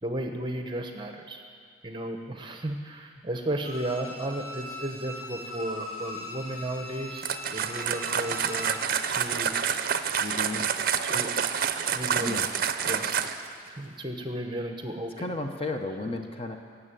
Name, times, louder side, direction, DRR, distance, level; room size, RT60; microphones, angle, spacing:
voice 1, 0.0-1.4 1.8-9.6 11.0-11.3 11.9-12.4 12.9-13.4 13.7-15.3, right 1 dB, 25° right, 4 dB, 1.1 m, -34 dB
Bowed string instrument, 3.6-8.8 9.2-9.3, left 1 dB, 65° left, 2.2 m, -40 dB
sound 1, 7.2-13.5, right 7 dB, 50° right, 0.6 m, -28 dB
voice 2, 10.2-10.7 12.2-12.5 15.2-16.6, left 2 dB, 30° left, 4 dB, 0.9 m, -33 dB
15.5 x 7.2 x 9.1 m, 2.1 s
head